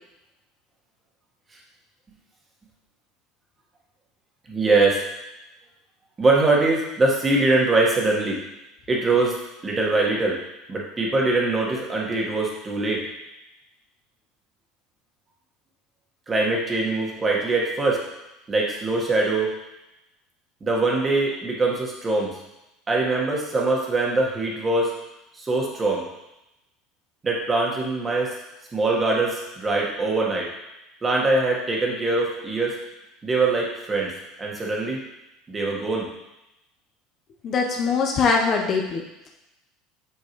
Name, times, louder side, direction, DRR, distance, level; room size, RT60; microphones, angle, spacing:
voice 1, 4.5-5.0 6.2-8.4 8.9-9.4 9.6-10.4 10.7-13.1 16.3-18.0 18.5-19.5 20.6-22.3 22.9-24.9 25.3-26.0 27.2-28.3 28.7-30.5 31.0-32.8 33.2-34.1 34.4-35.0 35.5-36.1, right 2 dB, 20° right, -2 dB, 1.6 m, -22 dB
voice 2, 37.4-39.0, left 5 dB, 40° left, 1 dB, 0.8 m, -22 dB
8.1 x 4.4 x 3.1 m, 0.92 s
supercardioid pair, 120°, 0 cm